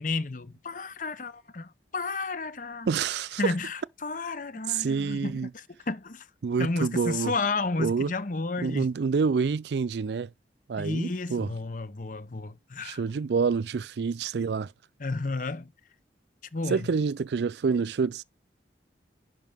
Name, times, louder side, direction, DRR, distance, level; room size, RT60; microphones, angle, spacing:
voice 1, 0.0-2.9 3.4-6.3 6.6-8.9 10.8-13.0 15.0-15.7 16.5-16.9, left 3 dB, 45° left, 0.8 m, -32 dB
voice 2, 2.9-3.5 4.7-5.5 6.4-7.3 7.8-8.1 8.6-10.3 10.7-11.5 12.8-14.7 16.7-18.2, right 5 dB, 70° right, 0.4 m, -27 dB
10.5 x 5.5 x 3.5 m
head